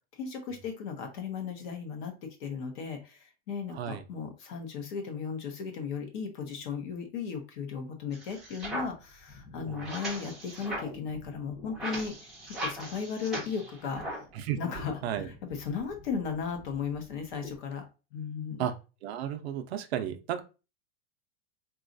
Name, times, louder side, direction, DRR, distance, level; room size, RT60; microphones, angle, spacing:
voice 1, 0.1-2.1 2.4-14.2 14.6-17.8 18.1-18.7, left 6 dB, 40° left, 5 dB, 0.7 m, -36 dB
voice 2, 3.7-4.0 9.7-9.8 14.4-14.6 15.0-15.3 18.6-18.7 19.0-20.4, right 10 dB, 65° right, 8 dB, 0.5 m, -33 dB
sound 1, 8.1-14.4 14.6-17.6, equal, ahead, 0.6 m, -40 dB
3.9 x 2.3 x 2.5 m, 0.31 s
supercardioid pair, 180°, 35 cm